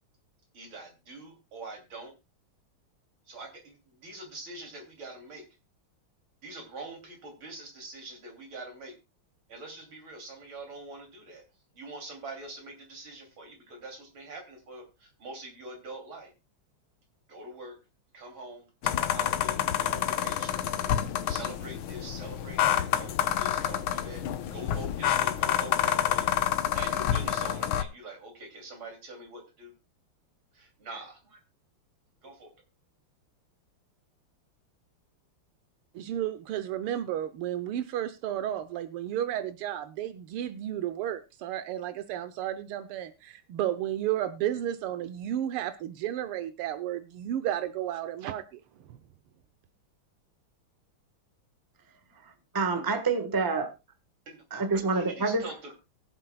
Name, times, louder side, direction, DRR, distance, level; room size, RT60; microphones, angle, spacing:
voice 1, 0.5-2.1 3.3-5.4 6.4-8.9 9.5-11.4 11.7-16.3 17.3-17.8 18.1-20.6 21.3-26.3 26.7-29.7 30.5-31.4 32.2-32.5 54.3-54.7 54.9-55.7, right 2 dB, 65° right, 3.7 m, -44 dB
sound 1, 18.8-27.8, left 10 dB, 70° left, 1.6 m, -28 dB
voice 2, 36.0-48.6, right 11 dB, 85° right, 1.7 m, -32 dB
voice 3, 52.5-53.7 54.5-55.5, right 3 dB, 15° right, 1.0 m, -27 dB
23.0 x 7.7 x 2.3 m
omnidirectional pair, 2.4 m